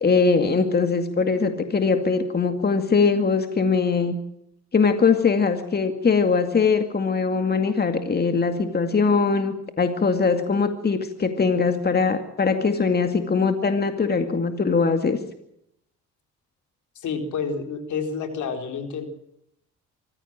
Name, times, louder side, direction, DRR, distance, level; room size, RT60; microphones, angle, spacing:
voice 1, 0.0-4.2 4.7-15.2, left 5 dB, 30° left, 7 dB, 2.3 m, -21 dB
voice 2, 17.0-19.0, left 5 dB, 75° left, 5 dB, 4.2 m, -29 dB
25.0 x 15.5 x 7.6 m, 0.77 s
cardioid pair, 90°, 30 cm